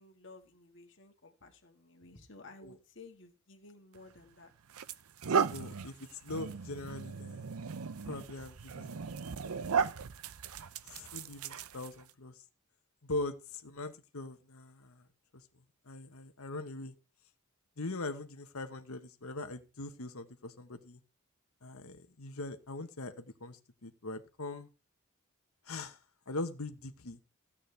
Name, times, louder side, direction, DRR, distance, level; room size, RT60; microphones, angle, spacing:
voice 1, 0.0-4.5, left 3 dB, 55° left, 4 dB, 2.0 m, -54 dB
sound 1, 3.9-4.1 4.7-12.1, right 6 dB, 85° right, 0.6 m, -36 dB
voice 2, 5.5-5.9 6.2-7.5 8.0-9.1 10.8-12.3 13.0-15.1 15.9-16.9 17.8-21.0 21.6-24.7 25.7-26.0 26.3-27.2, left 2 dB, 80° left, 8 dB, 1.3 m, -41 dB
15.5 x 8.6 x 3.4 m, 0.32 s
head